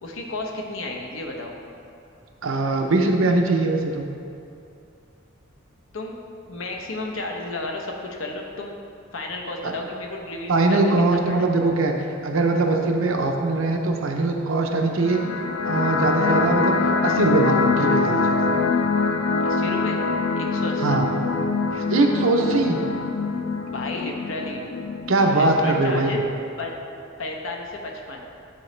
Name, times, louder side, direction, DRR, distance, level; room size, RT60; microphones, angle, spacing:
voice 1, 0.0-1.5 5.9-6.1 6.5-8.7 9.1-10.8 11.2-11.6 19.4-20.0 20.3-21.0 23.7-24.7 25.3-26.2 26.6-26.7 27.2-28.3, left 2 dB, 70° left, 1 dB, 0.8 m, -32 dB
voice 2, 2.4-4.1 9.6-9.7 10.5-11.9 12.2-15.2 15.6-16.8 17.0-18.5 20.8-21.0 21.7-22.8 25.1-26.2, right 2 dB, 70° right, 3 dB, 0.6 m, -21 dB
sound 1, 15.0-26.0, left 4 dB, 90° left, 0.4 m, -24 dB
9.4 x 3.8 x 3.2 m, 2.7 s
head